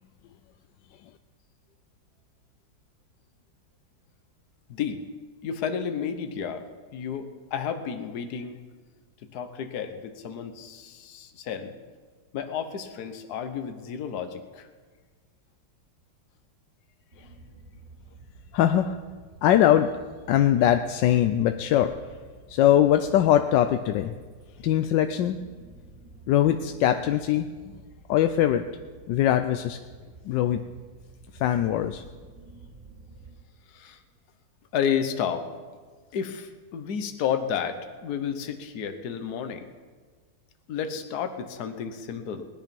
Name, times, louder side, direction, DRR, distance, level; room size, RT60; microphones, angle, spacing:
voice 1, 4.7-5.0 5.4-6.7 6.9-8.6 9.3-11.7 12.3-14.7 33.7-34.0 34.7-35.5 36.1-39.7 40.7-42.5, left 7 dB, 60° left, 7 dB, 1.5 m, -31 dB
sound 1, 17.1-33.3, right 3 dB, 65° right, 3.3 m, -51 dB
voice 2, 18.5-19.0 19.4-20.0 20.3-22.0 22.5-24.1 24.6-25.4 26.3-27.7 28.1-28.6 29.1-29.8 30.2-30.6 31.3-32.0, left 11 dB, 75° left, 8 dB, 1.2 m, -22 dB
19.5 x 10.5 x 5.3 m, 1.5 s
omnidirectional pair, 2.0 m